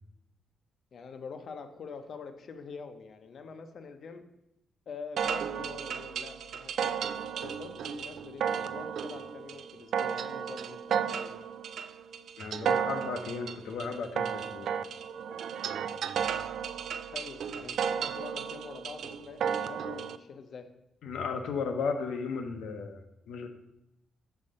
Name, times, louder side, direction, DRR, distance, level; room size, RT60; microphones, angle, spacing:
voice 1, 0.9-4.3 4.9-7.0 7.4-11.3 17.1-20.7, left 5 dB, 45° left, 8 dB, 0.7 m, -45 dB
sound 1, 5.2-20.2, right 7 dB, 60° right, 0.3 m, -33 dB
voice 2, 12.4-14.7 21.0-23.5, left 5 dB, 75° left, 4 dB, 0.9 m, -35 dB
5.6 x 5.2 x 6.4 m, 0.86 s
cardioid pair, 170°, 0 cm